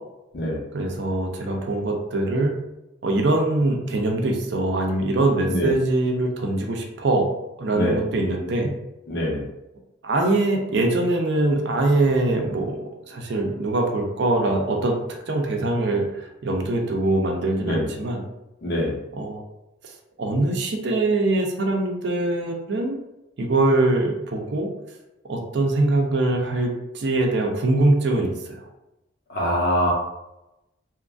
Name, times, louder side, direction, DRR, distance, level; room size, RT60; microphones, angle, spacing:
voice 1, 0.7-2.5 3.0-7.3 7.6-8.7 10.0-15.0 15.3-18.2 19.1-19.4 20.2-23.0 23.4-24.7 25.3-28.7, right 2 dB, 55° right, 1 dB, 0.5 m, -23 dB
voice 2, 9.1-9.5 17.6-17.9 18.6-19.0 29.3-29.9, equal, 50° left, -3 dB, 0.7 m, -24 dB
2.8 x 2.5 x 2.3 m, 0.94 s
head